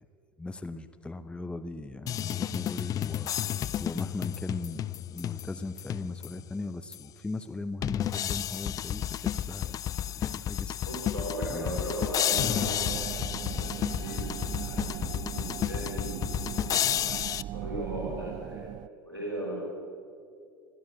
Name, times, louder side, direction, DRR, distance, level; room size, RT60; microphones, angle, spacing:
voice 1, 0.4-3.3 3.8-4.8 5.1-9.8 10.1-10.8 11.5-11.8, left 2 dB, 10° left, 10 dB, 0.8 m, -38 dB
sound 1, 2.1-6.5 6.9-7.0 7.8-17.4, left 11 dB, 30° left, 0.5 m, -31 dB
voice 2, 10.8-14.3 14.6-16.3 17.5-18.7 19.0-19.5, right 1 dB, 85° right, -6 dB, 5.6 m, -37 dB
sound 2, 12.3-18.9, right 13 dB, 35° right, 0.5 m, -39 dB
29.5 x 12.0 x 8.7 m, 2.4 s
figure-of-eight pair, 80°, 12 cm